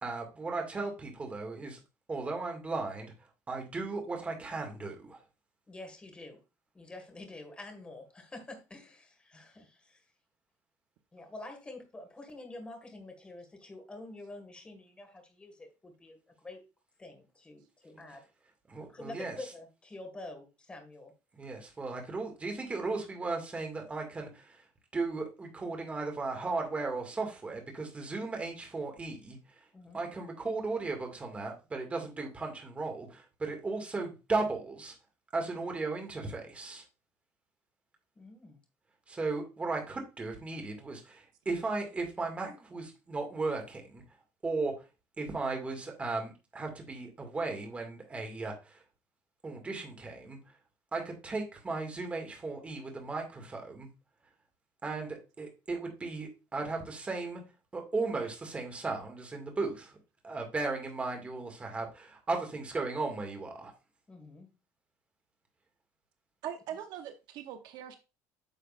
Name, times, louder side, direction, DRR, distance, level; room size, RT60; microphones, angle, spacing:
voice 1, 0.0-1.8 2.1-3.1 3.5-5.2 18.7-19.3 21.3-24.4 24.9-29.4 29.9-34.9 35.3-36.8 39.1-44.0 44.4-44.7 45.2-48.5 49.4-50.4 50.9-53.9 54.8-57.4 57.7-59.9 60.2-63.7, right 3 dB, 20° right, 2 dB, 2.1 m, -36 dB
voice 2, 5.7-6.4 6.7-10.0 11.1-16.2 16.4-16.6 17.0-18.2 18.9-21.1 29.7-30.0 38.2-38.6 64.1-64.5, left 2 dB, 15° left, 4 dB, 1.9 m, -47 dB
voice 3, 66.4-67.9, right 9 dB, 65° right, 7 dB, 0.8 m, -41 dB
9.6 x 6.4 x 2.5 m, 0.28 s
cardioid pair, 145°, 7 cm